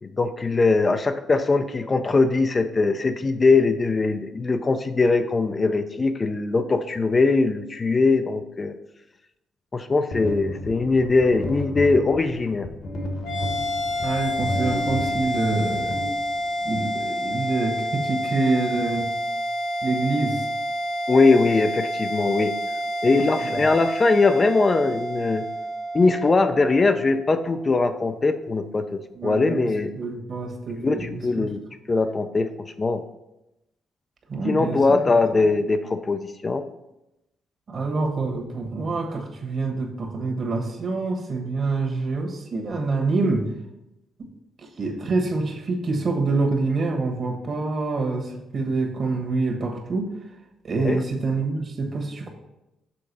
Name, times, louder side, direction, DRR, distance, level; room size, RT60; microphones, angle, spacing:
voice 1, 0.0-8.8 9.7-12.7 21.1-22.5 23.0-25.5 25.9-29.9 30.8-31.6 31.9-32.5 32.8-33.0 34.4-36.6 50.8-51.0, left 3 dB, 30° left, 8 dB, 0.4 m, -21 dB
sound 1, 10.1-16.7, left 1 dB, 50° left, 1.2 m, -32 dB
sound 2, 13.2-27.8, equal, 90° left, 1.5 m, -29 dB
voice 2, 14.0-16.0 16.6-19.1 19.8-20.5 23.1-23.6 29.1-29.7 30.0-31.5 34.3-35.1 37.7-43.5 44.2-44.3 44.6-50.1 50.6-52.3, right 3 dB, 45° right, 2 dB, 1.4 m, -26 dB
6.8 x 3.8 x 5.3 m, 0.92 s
cardioid pair, 90°, 0 cm